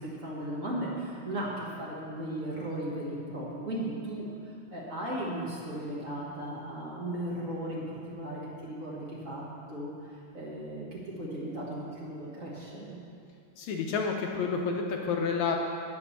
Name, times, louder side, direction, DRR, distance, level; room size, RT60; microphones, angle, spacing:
voice 1, 0.0-13.0, right 1 dB, 80° right, -6 dB, 0.7 m, -36 dB
voice 2, 13.6-15.6, left 5 dB, 75° left, 1 dB, 1.8 m, -29 dB
9.1 x 7.7 x 7.0 m, 2.5 s
omnidirectional pair, 3.9 m